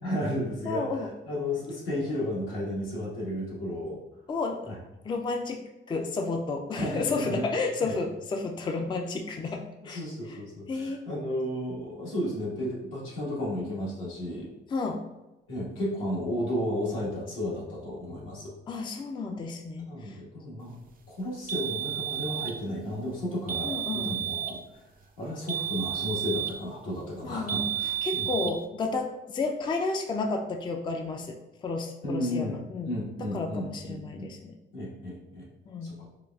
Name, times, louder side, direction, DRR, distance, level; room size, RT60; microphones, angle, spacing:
voice 1, 0.0-4.0 4.7-4.8 6.7-7.4 7.8-8.0 9.8-14.5 15.5-18.5 19.9-20.8 21.1-24.6 25.2-28.3 32.0-32.6 32.8-34.3 34.7-35.5 35.8-36.1, left 1 dB, 85° left, -6 dB, 1.5 m, -33 dB
voice 2, 0.7-1.1 4.3-4.8 5.0-10.4 10.7-11.0 14.7-15.0 18.7-20.2 23.6-24.2 27.2-31.4 31.6-32.9 33.2-34.6 35.7-35.9, left 3 dB, 25° left, 3 dB, 0.4 m, -32 dB
sound 1, 21.5-22.6 23.5-24.6 25.5-26.6 27.5-28.6, right 11 dB, 45° right, 0.5 m, -31 dB
4.7 x 2.3 x 2.3 m, 0.99 s
cardioid pair, 90°, 20 cm